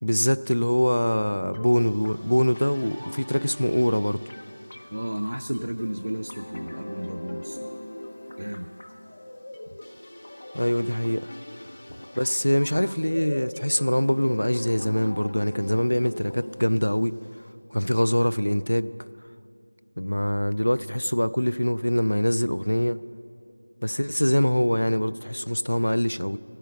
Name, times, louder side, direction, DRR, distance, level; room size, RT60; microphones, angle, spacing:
voice 1, 0.0-4.2 10.5-11.3 12.2-17.1 17.7-18.9 20.0-23.0 23.8-26.4, equal, 85° left, 16 dB, 0.4 m, -24 dB
sound 1, 1.5-17.5, left 1 dB, 40° left, 0.8 m, -41 dB
voice 2, 4.9-7.7 8.4-8.7 12.0-12.1, right 1 dB, 70° right, 8 dB, 0.4 m, -33 dB
16.5 x 5.6 x 8.3 m, 2.7 s
figure-of-eight pair, 175°, 0 cm